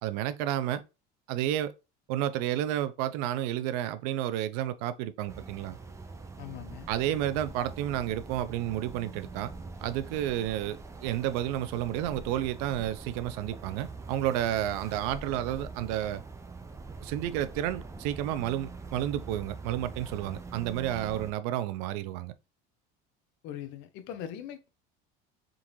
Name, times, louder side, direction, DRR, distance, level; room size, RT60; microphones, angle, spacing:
voice 1, 0.0-0.8 1.3-1.7 2.1-5.8 6.9-9.5 9.8-16.2 17.0-22.3, right 12 dB, 80° right, 0.5 m, -31 dB
sound 1, 5.3-21.3, right 3 dB, 15° right, 0.7 m, -43 dB
voice 2, 6.4-7.2 23.4-24.7, left 10 dB, 65° left, 0.8 m, -41 dB
3.8 x 3.7 x 3.0 m
cardioid pair, 125°, 20 cm